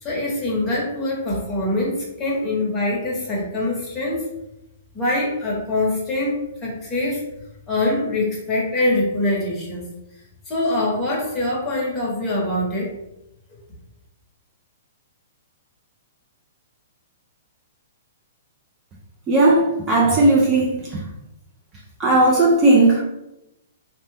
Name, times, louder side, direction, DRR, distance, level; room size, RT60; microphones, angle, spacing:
voice 1, 0.0-4.2 4.9-7.2 7.7-9.8 10.5-12.9, left 1 dB, 15° left, 0.9 m, -24 dB
voice 2, 19.3-21.1 22.0-23.0, right 2 dB, 20° right, 0.4 m, -16 dB
2.7 x 2.1 x 3.3 m
hypercardioid pair, 155°, 0 cm